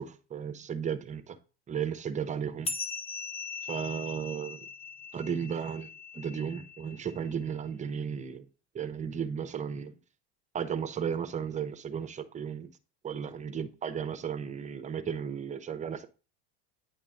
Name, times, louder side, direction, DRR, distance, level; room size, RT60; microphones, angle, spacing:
voice 1, 0.0-1.4 1.7-2.7 3.6-4.7 5.1-5.9 6.1-8.4 8.7-10.0 10.5-12.7 13.0-16.1, right 7 dB, 25° right, 0.8 m, -34 dB
sound 1, 2.7-7.5, left 4 dB, 20° left, 0.9 m, -40 dB
9.7 x 5.5 x 3.8 m
supercardioid pair, 120°, 31 cm